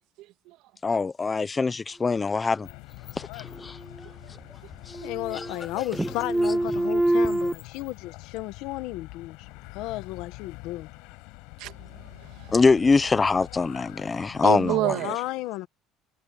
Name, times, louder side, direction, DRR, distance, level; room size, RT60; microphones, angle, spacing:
voice 1, 0.8-2.7 3.2-3.8 5.3-5.5 12.5-15.0, left 4 dB, 20° left, 1.0 m, -23 dB
sound 1, 2.6-14.8, left 27 dB, 90° left, 8.0 m, -45 dB
sound 2, 3.5-4.4 4.7-5.7 5.9-7.5, right 1 dB, 5° right, 0.4 m, -26 dB
voice 2, 5.0-9.4 9.8-10.9 15.0-15.7, left 17 dB, 75° left, 1.7 m, -33 dB
voice 3, 11.6-12.6 14.4-15.2, right 17 dB, 75° right, 2.8 m, -29 dB
cardioid pair, 150°, 0 cm